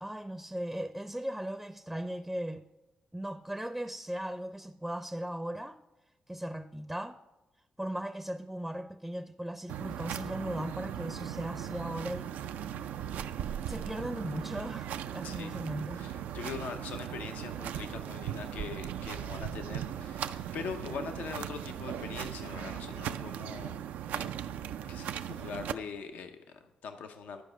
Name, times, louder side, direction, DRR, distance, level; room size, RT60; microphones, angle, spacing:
voice 1, 0.0-2.6 3.1-5.8 6.3-7.2 7.8-12.3 13.7-16.0, right 1 dB, 5° right, 0.5 m, -37 dB
sound 1, 9.7-25.7, right 10 dB, 85° right, 0.3 m, -38 dB
voice 2, 16.0-23.8 24.1-24.3 24.9-27.4, left 6 dB, 85° left, 0.6 m, -42 dB
11.0 x 4.9 x 6.4 m
supercardioid pair, 55°, 3 cm